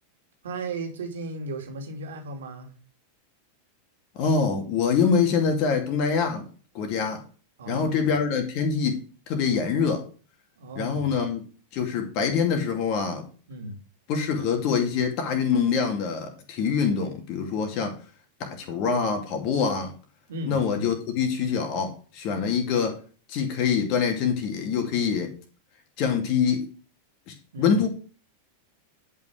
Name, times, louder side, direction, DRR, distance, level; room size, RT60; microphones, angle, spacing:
voice 1, 0.4-2.7 7.6-8.1 10.6-11.1 13.5-13.8 20.3-20.9 27.5-27.8, right 2 dB, 60° right, 2.6 m, -35 dB
voice 2, 4.1-6.4 6.7-7.2 7.7-10.0 10.7-11.4 11.7-13.2 14.1-17.9 18.4-19.9 20.5-23.0 23.3-25.3 26.0-26.7 27.3-27.9, left 6 dB, 40° left, 2.4 m, -25 dB
10.5 x 5.6 x 5.0 m
figure-of-eight pair, 90°, 0 cm